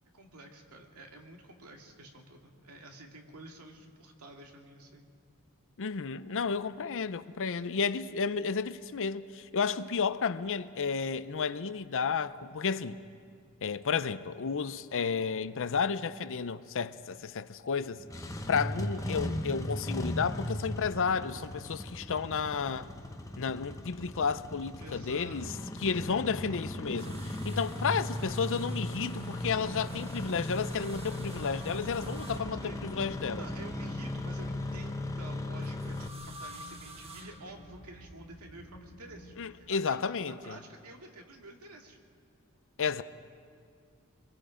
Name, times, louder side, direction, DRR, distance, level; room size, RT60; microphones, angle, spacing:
voice 1, 0.1-5.1 24.8-26.3 27.2-27.4 32.6-42.0, right 1 dB, 75° right, 2.3 m, -50 dB
voice 2, 5.8-13.0 13.6-18.0 18.5-22.9 23.4-25.5 25.8-33.4 39.4-40.6 42.8-43.0, left 5 dB, 60° left, 0.6 m, -32 dB
Engine starting, 18.0-36.1, left 1 dB, 15° left, 1.0 m, -37 dB
sound 1, 26.4-39.4, equal, 90° left, 2.4 m, -51 dB
sound 2, 27.0-33.2 35.6-38.1 39.2-39.9 41.4-41.5, right 2 dB, 25° right, 1.3 m, -51 dB
25.0 x 22.0 x 5.1 m
head